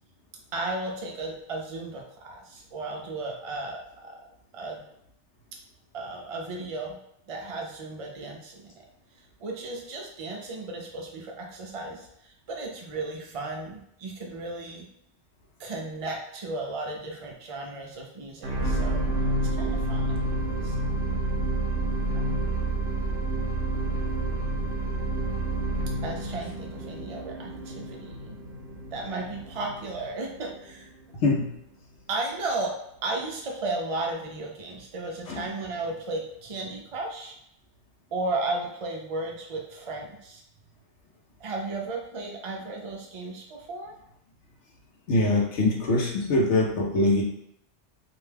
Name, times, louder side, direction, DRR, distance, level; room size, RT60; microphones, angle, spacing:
voice 1, 0.5-4.2 4.5-4.8 5.9-7.0 7.3-8.9 9.2-14.9 15.6-19.0 19.5-20.2 20.6-21.2 22.1-22.7 26.0-28.4 28.9-30.9 32.1-32.8 33.0-37.4 38.1-40.4 41.4-43.9, right 2 dB, 50° right, 0 dB, 0.4 m, -35 dB
sound 1, 18.4-30.8 31.4-31.5, right 2 dB, 70° right, 0.8 m, -29 dB
voice 2, 31.2-31.6 35.3-35.4 45.1-47.2, left 2 dB, 75° left, -1 dB, 1.0 m, -23 dB
2.6 x 2.2 x 3.2 m, 0.76 s
omnidirectional pair, 1.2 m